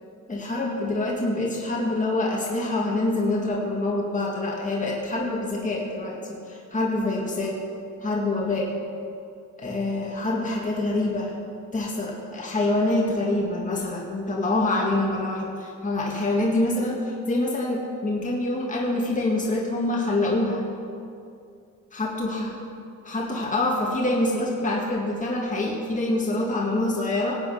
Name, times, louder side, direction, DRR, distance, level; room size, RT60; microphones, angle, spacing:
voice 1, 0.3-7.6 8.0-8.7 9.6-11.3 11.7-20.6 21.9-22.6 23.0-27.4, left 2 dB, 25° left, -2 dB, 1.9 m, -26 dB
18.5 x 8.6 x 5.7 m, 2.5 s
cardioid pair, 105°, 31 cm